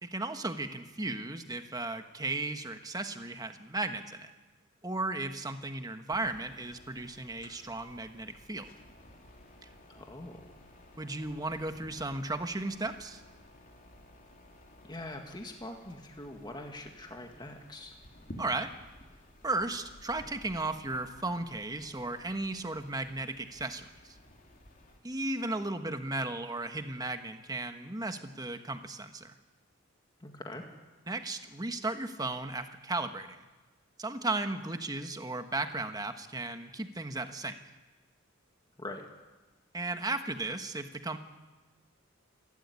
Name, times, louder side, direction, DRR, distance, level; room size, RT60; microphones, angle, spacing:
voice 1, 0.0-4.3 4.8-8.7 11.0-13.2 18.4-18.7 19.4-24.1 25.0-29.3 31.1-33.4 34.0-37.6 39.7-41.2, right 2 dB, 20° right, 7 dB, 1.3 m, -35 dB
sound 1, 6.1-25.0, left 1 dB, 40° left, 3.3 m, -54 dB
voice 2, 9.9-10.5 14.8-18.0 30.2-30.6 38.8-39.1, left 1 dB, 20° left, 3 dB, 1.9 m, -43 dB
27.5 x 12.5 x 9.8 m, 1.2 s
head